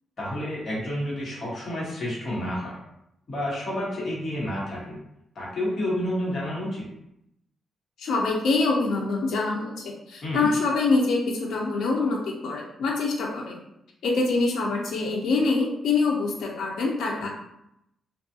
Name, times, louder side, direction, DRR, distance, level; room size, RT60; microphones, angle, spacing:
voice 1, 0.2-2.8 3.3-5.0 5.3-6.9 10.2-10.5, left 1 dB, 40° left, -5 dB, 1.1 m, -30 dB
voice 2, 8.0-13.6 14.0-17.3, left 3 dB, 85° left, -2 dB, 0.4 m, -25 dB
2.5 x 2.3 x 2.6 m, 0.82 s
wide cardioid pair, 145°, 0 cm